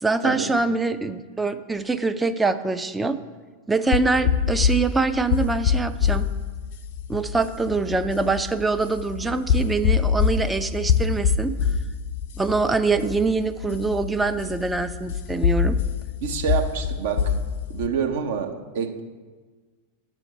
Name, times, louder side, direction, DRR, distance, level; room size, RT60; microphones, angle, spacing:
voice 1, 0.0-3.2 3.7-6.3 7.1-11.5 12.4-15.8, right 3 dB, 10° right, 10 dB, 0.4 m, -24 dB
sound 1, 3.9-17.9, left 6 dB, 55° left, 0.5 m, -25 dB
voice 2, 16.2-17.3 17.7-19.0, right 7 dB, 55° right, 5 dB, 0.9 m, -27 dB
9.6 x 6.3 x 4.3 m, 1.4 s
figure-of-eight pair, 90°, 0 cm